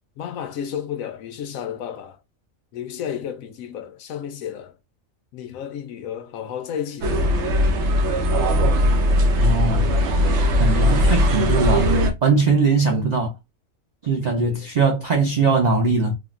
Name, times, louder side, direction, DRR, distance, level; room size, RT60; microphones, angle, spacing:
voice 1, 0.2-2.2 2.7-4.7 5.3-7.3 12.9-13.0 14.5-14.7, left 9 dB, 80° left, 1.0 m, -32 dB
sound 1, 7.0-12.1, equal, 65° right, 0.8 m, -19 dB
voice 2, 9.4-9.9 10.6-11.9 12.2-13.3 14.0-16.1, right 4 dB, 85° right, 0.3 m, -20 dB
3.6 x 2.1 x 2.4 m
omnidirectional pair, 1.4 m